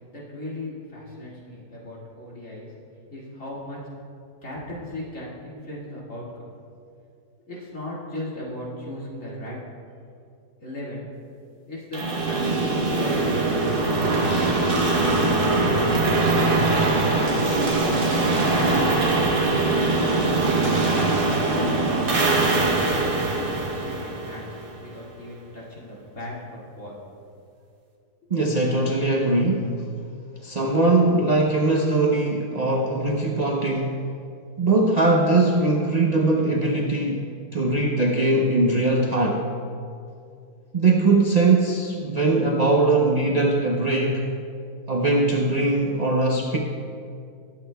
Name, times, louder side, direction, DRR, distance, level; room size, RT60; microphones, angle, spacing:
voice 1, 0.1-2.7 3.1-3.8 4.4-6.5 7.5-9.6 10.6-11.1 11.7-12.0 12.3-13.9 14.9-16.5 17.0-20.5 21.2-23.5 23.7-24.5 24.8-27.0 28.2-28.3, left 1 dB, 50° left, -6 dB, 2.6 m, -37 dB
sound 1, 11.9-24.8, right 2 dB, 40° right, 1.1 m, -22 dB
voice 2, 28.3-29.8 30.4-34.0 34.6-39.5 40.7-44.3 44.9-46.6, right 2 dB, 55° right, 0 dB, 0.4 m, -21 dB
20.0 x 8.5 x 2.3 m, 2.5 s
omnidirectional pair, 1.7 m